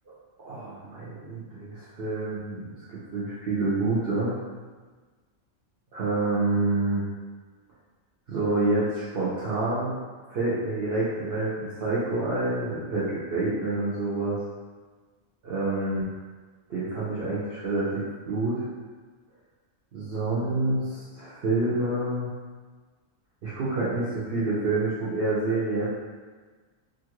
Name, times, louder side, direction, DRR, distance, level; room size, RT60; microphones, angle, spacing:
voice 1, 0.4-4.3 5.9-7.0 8.3-9.9 10.3-14.4 15.4-16.1 16.7-18.7 19.9-22.3 23.4-25.9, right 2 dB, 55° right, -9 dB, 0.8 m, -27 dB
2.8 x 2.4 x 2.9 m, 1.4 s
omnidirectional pair, 1.4 m